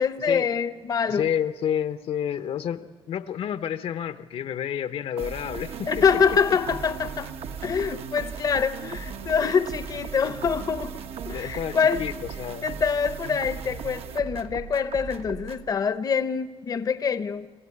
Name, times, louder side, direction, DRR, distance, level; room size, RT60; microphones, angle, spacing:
voice 1, 0.0-1.3 5.9-7.3 7.6-12.1 12.6-17.5, left 6 dB, 40° left, 0.7 m, -25 dB
voice 2, 1.1-6.0 11.3-12.1 12.4-12.7, left 9 dB, 75° left, 0.9 m, -30 dB
sound 1, 5.2-15.7, right 7 dB, 85° right, 1.2 m, -37 dB
26.5 x 14.5 x 9.8 m
wide cardioid pair, 160°, 10 cm